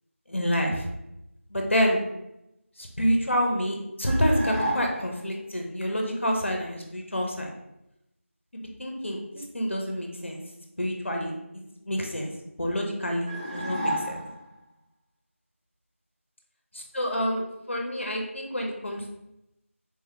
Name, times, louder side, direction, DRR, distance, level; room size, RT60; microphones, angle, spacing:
voice 1, 0.3-0.9 1.5-2.0 2.8-7.5 8.5-10.4 10.8-11.3 11.8-12.3 12.6-14.2 16.7-19.0, equal, 55° left, 1 dB, 0.6 m, -28 dB
sound 1, 4.0-5.2 13.3-14.6, equal, 20° right, 0.4 m, -31 dB
3.3 x 2.3 x 2.9 m, 0.88 s
figure-of-eight pair, 175°, 8 cm